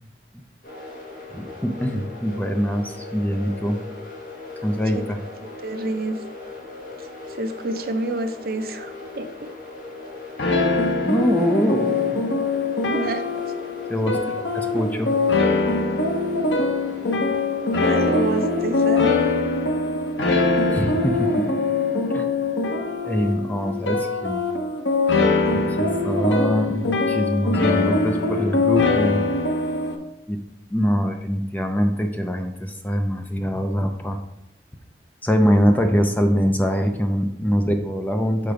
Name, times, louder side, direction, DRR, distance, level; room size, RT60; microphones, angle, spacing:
sound 1, 0.6-18.9, left 2 dB, 50° left, 1.7 m, -39 dB
voice 1, 1.3-3.8 4.6-5.2 11.0-12.2 13.9-14.2 14.5-15.1 20.7-21.5 22.1-22.2 23.0-24.4 25.8-29.2 30.3-30.4 30.7-34.2 35.2-38.5, equal, 10° left, 5 dB, 0.5 m, -23 dB
voice 2, 5.6-6.1 7.0-9.5 12.8-13.4 14.0-14.3 17.7-19.2 25.5-25.7, right 2 dB, 55° right, 8 dB, 0.6 m, -29 dB
sound 2, 10.4-30.0, left 3 dB, 85° left, 0.8 m, -22 dB
6.7 x 3.9 x 4.9 m, 0.84 s
head